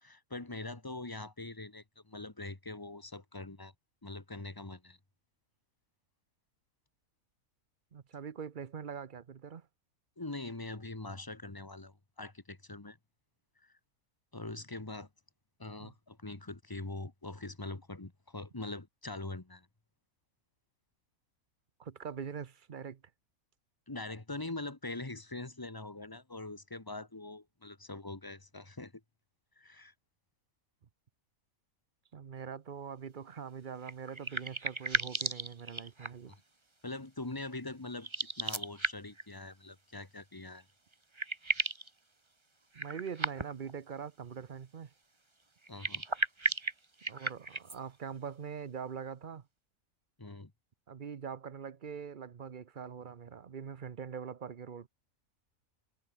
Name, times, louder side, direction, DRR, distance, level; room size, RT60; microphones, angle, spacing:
voice 1, 0.0-3.7 4.0-5.0 10.2-13.0 13.6-13.8 14.3-15.1 15.6-19.7 23.9-28.9 29.6-29.9 36.3-36.4 36.8-38.1 38.4-40.6 45.7-46.0 50.2-50.5, left 2 dB, 15° left, 1.6 m, -43 dB
voice 2, 7.9-9.7 15.8-15.9 21.8-23.0 32.1-36.3 42.7-44.9 47.1-49.4 50.9-54.9, right 7 dB, 45° right, 0.8 m, -43 dB
sound 1, 33.8-36.3 38.0-39.2 40.6-40.7 40.9-41.9 42.7-43.7 45.6-47.8, right 2 dB, 20° right, 1.5 m, -35 dB
omnidirectional pair, 1.5 m